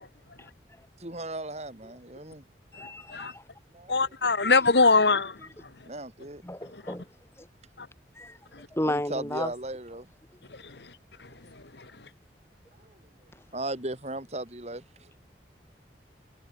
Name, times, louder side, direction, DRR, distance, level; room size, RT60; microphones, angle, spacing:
voice 1, 1.0-2.4 3.7-3.9 5.8-6.4 8.8-10.1 12.8-13.0 13.5-15.1, right 2 dB, 40° right, 4.8 m, -36 dB
voice 2, 2.7-3.4 6.4-7.1 7.4-7.5 8.2-8.4 8.7-9.5, left 1 dB, 15° left, 2.6 m, -32 dB
voice 3, 3.9-5.3, left 3 dB, 75° left, 2.1 m, -21 dB
head